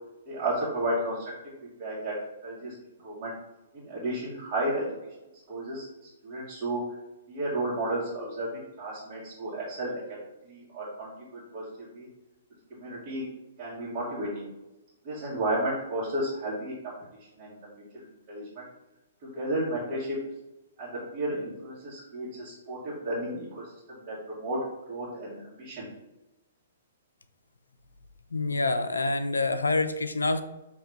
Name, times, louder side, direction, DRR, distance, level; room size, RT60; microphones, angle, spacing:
voice 1, 0.2-1.2 1.8-2.1 2.4-2.7 3.0-3.3 3.7-4.9 5.5-6.8 7.3-10.2 10.5-11.6 11.9-12.1 12.7-13.2 13.6-14.5 15.0-16.9 17.4-18.6 19.2-20.2 20.8-24.6 24.9-25.9, right 1 dB, 40° right, -9 dB, 1.5 m, -33 dB
voice 2, 28.3-30.4, left 3 dB, 80° left, 10 dB, 0.4 m, -26 dB
5.4 x 2.8 x 3.3 m, 0.99 s
figure-of-eight pair, 120°, 0 cm